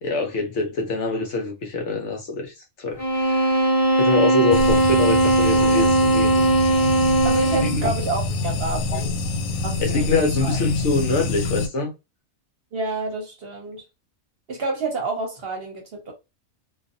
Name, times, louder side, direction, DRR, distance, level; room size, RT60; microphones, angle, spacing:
voice 1, 0.0-3.6 4.0-6.3 7.6-7.8 8.9-9.0 9.8-11.9, left 3 dB, 60° left, 0.9 m, -25 dB
sound 1, 3.0-7.9, right 1 dB, 25° left, 0.9 m, -19 dB
sound 2, 4.5-11.7, left 2 dB, 85° left, 1.0 m, -26 dB
voice 2, 7.2-9.2 9.6-10.6 12.7-13.8 14.5-16.1, right 3 dB, 55° right, 0.8 m, -29 dB
2.5 x 2.3 x 2.5 m
omnidirectional pair, 1.4 m